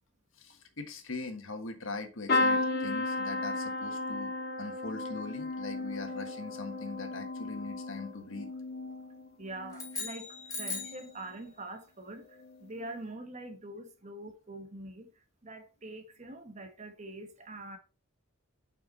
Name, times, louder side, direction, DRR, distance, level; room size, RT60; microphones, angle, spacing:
voice 1, 0.4-4.3 4.6-8.5, left 3 dB, 75° left, 1.4 m, -41 dB
sound 1, 2.3-10.1 10.6-11.1 12.4-12.6 12.8-12.9, left 2 dB, 50° left, 1.7 m, -34 dB
voice 2, 9.4-10.3 10.6-15.1 15.4-17.8, right 1 dB, 35° right, 1.1 m, -44 dB
sound 2, 9.7-11.1, left 3 dB, 15° left, 2.4 m, -38 dB
7.4 x 5.5 x 4.1 m
head